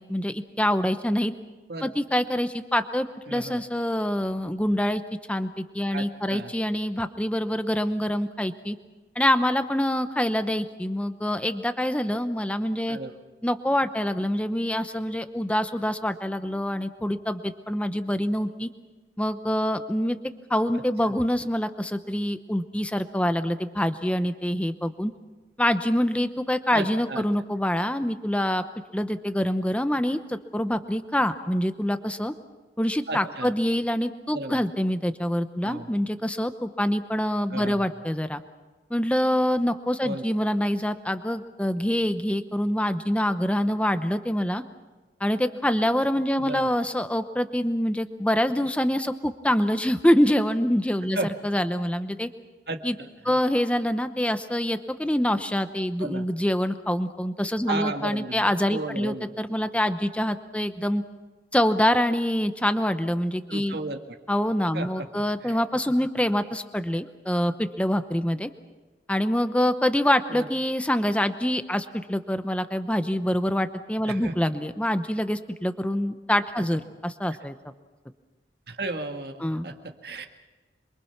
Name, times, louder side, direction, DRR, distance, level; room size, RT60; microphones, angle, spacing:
voice 1, 0.0-1.3 1.8-5.0 5.3-8.8 9.2-13.0 13.4-18.7 19.2-20.2 20.5-25.1 25.6-28.6 28.9-32.3 32.8-38.4 38.9-44.6 45.2-51.2 51.4-52.3 52.8-52.9 53.2-61.0 61.5-63.8 64.3-68.5 69.1-77.5 79.4-79.7, equal, 5° left, 10 dB, 0.8 m, -25 dB
voice 2, 3.3-3.6 5.9-6.5 12.9-13.2 21.1-21.2 26.7-27.2 33.1-33.5 34.3-34.6 35.6-35.9 37.5-37.8 40.0-40.2 46.4-46.7 51.1-51.3 52.7-53.4 56.0-56.2 57.7-59.3 63.5-64.2 64.7-65.1 65.4-65.6 70.3-70.5 74.1-74.3 76.6-76.8 78.7-80.3, right 2 dB, 60° right, 4 dB, 1.9 m, -34 dB
27.0 x 23.5 x 5.9 m, 1.2 s
head